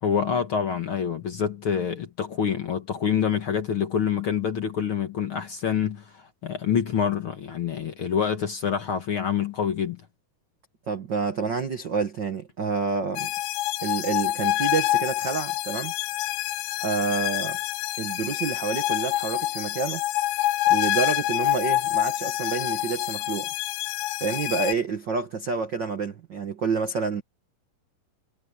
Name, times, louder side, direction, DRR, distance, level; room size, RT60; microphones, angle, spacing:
voice 1, 0.0-10.0, left 7 dB, 55° left, 1.5 m, -26 dB
voice 2, 10.9-13.3 13.8-15.9 16.8-17.6 18.0-20.0 20.7-23.5 24.2-27.2, right 5 dB, 70° right, 1.0 m, -28 dB
sound 1, 13.2-24.7, left 15 dB, 85° left, 2.6 m, -27 dB
omnidirectional pair, 4.2 m